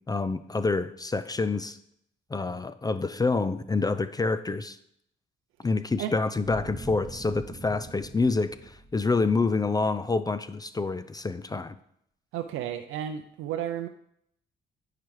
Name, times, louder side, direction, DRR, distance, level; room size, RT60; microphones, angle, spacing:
voice 1, 0.1-1.8 2.3-4.8 5.6-11.8, left 3 dB, 20° left, 12 dB, 0.4 m, -27 dB
sound 1, 6.4-9.4 9.6-9.7, right 1 dB, 15° right, 1.4 m, -43 dB
voice 2, 12.3-13.9, right 10 dB, 90° right, 7 dB, 0.5 m, -32 dB
10.5 x 4.9 x 4.6 m, 0.72 s
cardioid pair, 90°, 20 cm